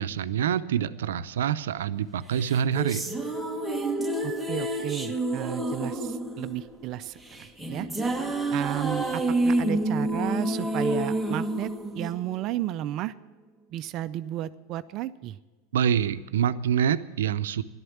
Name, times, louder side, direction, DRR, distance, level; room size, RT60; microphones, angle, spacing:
voice 1, 0.0-3.1 15.7-17.6, right 8 dB, 85° right, 12 dB, 0.6 m, -26 dB
sound 1, 2.4-12.8, right 1 dB, ahead, 1.5 m, -29 dB
voice 2, 4.2-7.9 8.5-11.7 11.9-13.1 13.7-15.4, right 13 dB, 45° right, 12 dB, 0.5 m, -33 dB
13.5 x 11.5 x 7.2 m, 1.2 s
hypercardioid pair, 115°, 0 cm